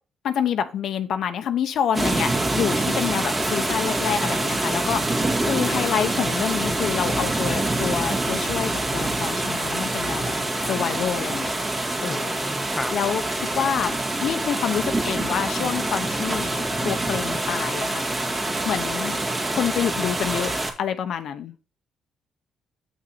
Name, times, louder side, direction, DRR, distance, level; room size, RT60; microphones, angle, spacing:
voice 1, 0.2-10.3 10.7-11.5 12.0-12.3 12.9-18.1 18.6-19.2 19.5-20.5 20.8-21.5, left 8 dB, 70° left, 0.8 m, -27 dB
sound 1, 1.9-20.7, right 2 dB, 30° right, 2.0 m, -25 dB
voice 2, 12.0-12.9, left 2 dB, 15° left, 0.7 m, -33 dB
7.4 x 5.9 x 4.2 m
cardioid pair, 90°, 0 cm